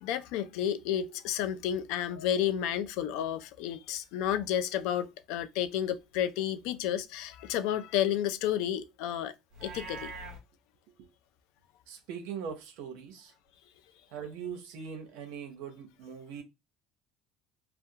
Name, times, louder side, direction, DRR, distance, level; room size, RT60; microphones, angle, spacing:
voice 1, 0.0-9.3 9.6-10.2, left 10 dB, 80° left, 0.3 m, -31 dB
Livestock farm animals working animals, 9.5-10.4, right 3 dB, 50° right, 0.7 m, -42 dB
voice 2, 11.9-13.3 14.1-16.4, right 7 dB, 90° right, 0.6 m, -41 dB
2.4 x 2.2 x 2.7 m
cardioid pair, 150°, 0 cm